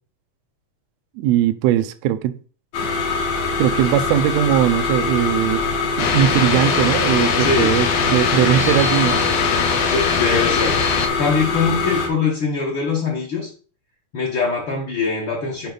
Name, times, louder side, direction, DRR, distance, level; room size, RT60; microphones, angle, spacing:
voice 1, 1.2-2.3 3.6-5.6 6.0-9.2, right 12 dB, 80° right, 1.6 m, -19 dB
sound 1, 2.7-12.1, left 4 dB, 70° left, 2.8 m, -23 dB
sound 2, 6.0-11.1, left 6 dB, 90° left, 2.3 m, -22 dB
voice 2, 7.4-7.7 9.9-10.8 11.2-13.5 14.1-15.7, left 4 dB, 55° left, 1.5 m, -22 dB
6.9 x 5.0 x 3.9 m
omnidirectional pair, 3.4 m